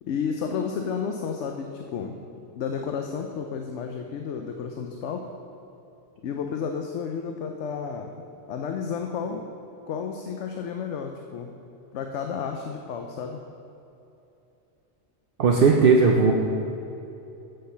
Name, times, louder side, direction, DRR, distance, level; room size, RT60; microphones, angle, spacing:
voice 1, 0.0-2.2 2.5-5.3 6.2-9.4 9.9-11.5 11.9-13.4, left 6 dB, 75° left, 4 dB, 0.9 m, -32 dB
voice 2, 15.4-16.3, right 4 dB, 55° right, 0 dB, 0.8 m, -17 dB
7.8 x 6.7 x 5.6 m, 2.8 s
omnidirectional pair, 1.2 m